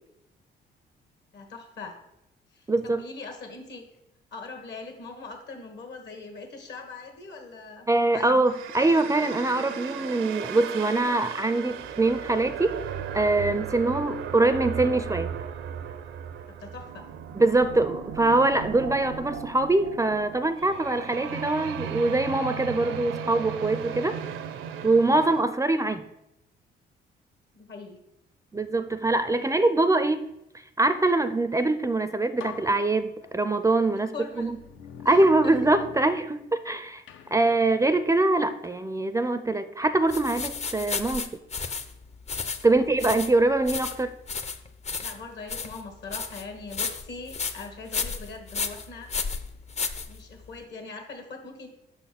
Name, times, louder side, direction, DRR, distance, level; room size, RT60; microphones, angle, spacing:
voice 1, 1.3-2.0 2.5-3.8 4.3-7.9 8.1-8.5 13.8-14.1 16.5-17.0 25.0-25.3 27.5-28.0 33.8-34.5 35.0-35.5 42.6-42.8 45.0-49.1 50.1-51.7, left 3 dB, 65° left, 5 dB, 1.5 m, -41 dB
voice 2, 2.7-3.0 7.9-12.8 13.1-15.3 17.4-24.2 24.8-26.1 28.5-30.2 30.8-34.6 35.0-37.0 37.3-41.3 42.6-44.1, right 2 dB, 15° right, 11 dB, 0.4 m, -23 dB
sound 1, 8.4-25.4, right 8 dB, 85° right, 0.6 m, -36 dB
sound 2, 31.8-31.9 32.4-33.7 34.3-36.7 37.1-38.9, left 8 dB, 80° left, 0.6 m, -45 dB
sound 3, 40.1-50.6, left 5 dB, 35° left, 0.6 m, -33 dB
6.0 x 4.1 x 5.8 m, 0.86 s
cardioid pair, 90°, 20 cm